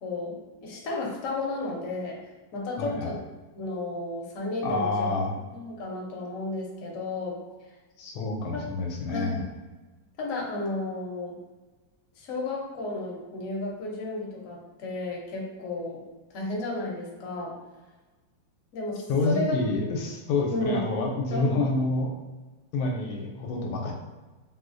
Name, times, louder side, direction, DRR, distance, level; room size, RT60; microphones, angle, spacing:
voice 1, 0.0-2.2 2.5-3.2 3.5-5.1 5.5-7.4 8.5-8.6 9.1-9.4 10.2-11.3 12.2-16.0 16.3-17.5 18.7-19.6 20.5-20.8 21.3-21.6, left 2 dB, 60° left, -3 dB, 0.9 m, -33 dB
voice 2, 2.8-3.2 4.6-5.4 8.0-9.5 19.1-22.1 22.7-23.9, left 3 dB, 85° left, 0 dB, 1.4 m, -28 dB
3.3 x 2.7 x 2.5 m, 1.2 s
omnidirectional pair, 2.2 m